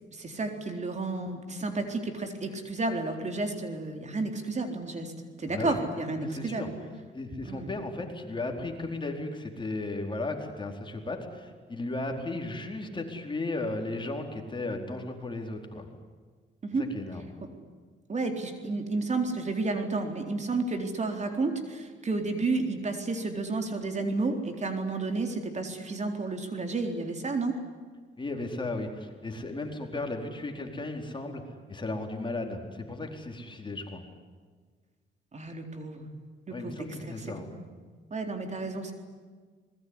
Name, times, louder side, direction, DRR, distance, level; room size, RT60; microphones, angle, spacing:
voice 1, 0.1-5.1 5.4-6.7 7.4-7.7 16.6-16.9 18.1-27.6 35.3-36.1 36.5-37.5 38.1-38.9, right 3 dB, 35° right, 5 dB, 4.0 m, -31 dB
voice 2, 5.5-5.8 6.2-6.7 7.1-15.9 16.8-17.3 28.2-31.4 31.7-34.0 36.5-37.5, left 2 dB, 25° left, 3 dB, 4.4 m, -35 dB
26.0 x 21.0 x 9.9 m, 1.5 s
cardioid pair, 90°, 20 cm